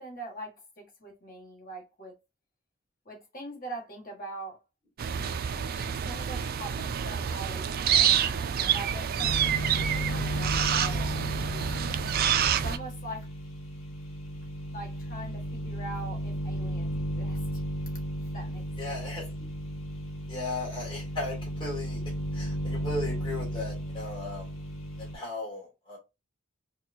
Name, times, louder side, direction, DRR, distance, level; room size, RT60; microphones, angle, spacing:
voice 1, 0.0-2.2 3.0-4.6 5.1-5.2 5.7-11.6 12.6-13.3 14.7-19.1 19.4-19.5, right 2 dB, 45° left, 1.4 m, -43 dB
sound 1, 5.0-12.8, right 8 dB, 45° right, 0.3 m, -27 dB
sound 2, 9.2-25.1, equal, 70° left, 1.1 m, -34 dB
voice 2, 18.8-19.3 20.3-22.0 22.3-24.5 25.0-26.0, left 2 dB, 25° left, 1.9 m, -36 dB
4.5 x 2.3 x 2.6 m
head